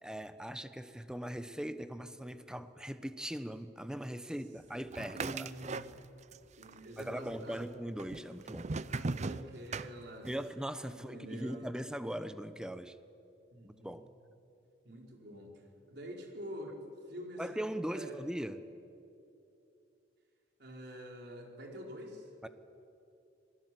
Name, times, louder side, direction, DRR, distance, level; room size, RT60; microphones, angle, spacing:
voice 1, 0.0-5.5 7.0-8.7 10.2-13.0 13.6-14.0 17.4-18.6 22.4-22.5, equal, 5° right, 11 dB, 0.9 m, -40 dB
sound 1, 4.9-6.4 6.6-7.4 8.0-10.5, right 3 dB, 40° right, 0.6 m, -38 dB
voice 2, 5.1-5.9 6.6-7.7 8.9-10.3 10.9-11.7 13.5-14.1 14.8-15.5 15.9-18.2 20.6-22.3, equal, 65° right, 1 dB, 4.4 m, -46 dB
26.5 x 19.5 x 7.7 m, 2.7 s
head